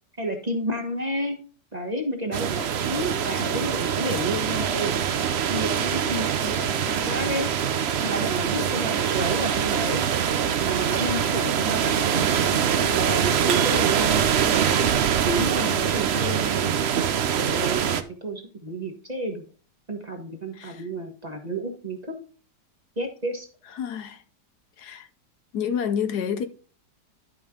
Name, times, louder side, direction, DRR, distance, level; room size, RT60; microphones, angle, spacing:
voice 1, 0.2-1.4 1.7-4.9 5.5-7.5 8.0-10.0 10.6-12.6 12.9-14.9 15.2-16.8 17.4-19.4 19.9-22.2 23.0-23.5, right 1 dB, 25° right, 1.4 m, -30 dB
sound 1, 2.3-18.0, right 8 dB, 60° right, 0.7 m, -24 dB
sound 2, 13.5-14.5, right 8 dB, 90° right, 1.8 m, -35 dB
voice 2, 23.8-24.2 24.8-25.1 25.5-26.5, left 7 dB, 70° left, 1.3 m, -28 dB
11.5 x 5.3 x 3.7 m
omnidirectional pair, 1.8 m